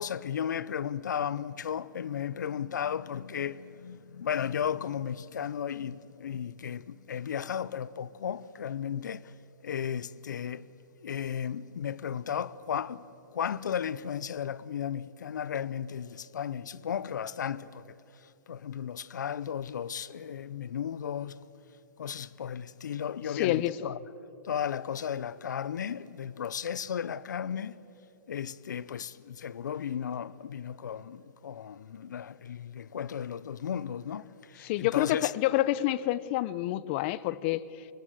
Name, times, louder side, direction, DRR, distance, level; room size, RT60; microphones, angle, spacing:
voice 1, 0.0-9.3 9.6-10.6 11.0-13.0 13.3-18.0 18.5-21.4 22.0-24.0 24.4-27.8 28.3-35.3, left 8 dB, 80° left, 0.8 m, -34 dB
voice 2, 23.3-23.9 34.6-37.6, left 15 dB, 40° left, 0.7 m, -28 dB
25.0 x 22.5 x 7.9 m
hypercardioid pair, 145°, 10 cm